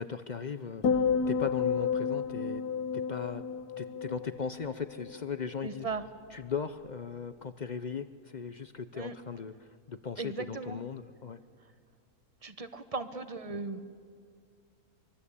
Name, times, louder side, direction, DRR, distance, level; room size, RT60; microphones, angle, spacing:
voice 1, 0.0-2.6 2.9-3.4 3.8-5.9 6.3-11.4, left 6 dB, 50° left, 12 dB, 0.5 m, -38 dB
sound 1, 0.8-5.2 5.5-5.9, left 6 dB, 85° left, 1.6 m, -31 dB
voice 2, 5.6-6.0 8.9-9.1 10.2-10.8 12.4-13.8, right 4 dB, 25° right, 10 dB, 1.1 m, -37 dB
24.5 x 23.0 x 8.4 m, 2.3 s
omnidirectional pair, 1.6 m